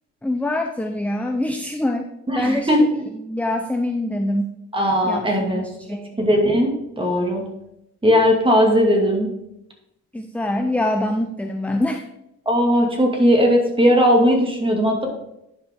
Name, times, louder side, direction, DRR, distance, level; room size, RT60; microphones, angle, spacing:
voice 1, 0.2-2.8 3.1-4.5 5.0-6.2 10.1-12.0, left 1 dB, 5° left, 5 dB, 0.6 m, -24 dB
voice 2, 2.3-3.0 4.7-5.6 6.2-7.4 8.0-9.3 12.5-15.1, equal, 15° right, 1 dB, 2.3 m, -18 dB
11.0 x 5.0 x 3.7 m, 0.85 s
cardioid pair, 90°, 30 cm